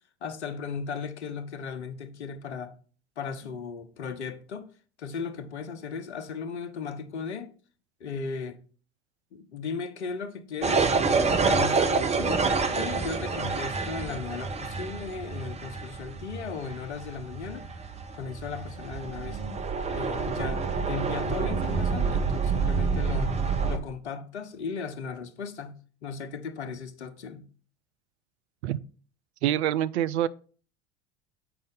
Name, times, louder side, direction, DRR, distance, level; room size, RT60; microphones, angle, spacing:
voice 1, 0.2-2.7 3.2-4.7 5.0-7.5 8.0-8.6 9.3-12.4 12.7-17.7 18.1-19.4 19.9-23.4 23.7-27.5, left 5 dB, 80° left, 0.9 m, -36 dB
sound 1, 10.6-23.8, right 4 dB, 20° right, 0.8 m, -28 dB
voice 2, 29.4-30.3, right 12 dB, 75° right, 0.5 m, -25 dB
7.7 x 5.2 x 3.8 m
figure-of-eight pair, 75°, 34 cm